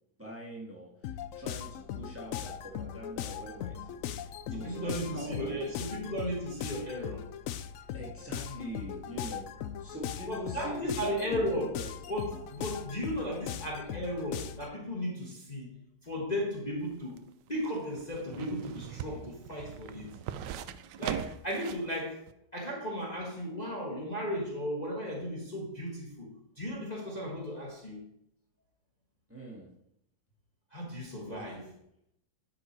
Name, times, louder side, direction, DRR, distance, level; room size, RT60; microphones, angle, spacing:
voice 1, 0.2-5.9 7.9-9.5 9.8-11.9 18.8-18.9 29.3-29.7 31.3-31.6, right 1 dB, 10° right, -3 dB, 1.7 m, -44 dB
sound 1, 1.0-14.7, left 10 dB, 80° left, 0.7 m, -39 dB
voice 2, 4.5-7.3 10.3-11.8 12.1-15.7 16.0-17.2 17.5-20.1 21.0-22.2 22.5-28.0 30.7-31.6, equal, 25° left, -3 dB, 1.5 m, -35 dB
sound 2, 16.8-21.9 22.3-22.4, right 10 dB, 80° right, 1.2 m, -41 dB
10.5 x 5.7 x 4.6 m, 0.79 s
omnidirectional pair, 1.9 m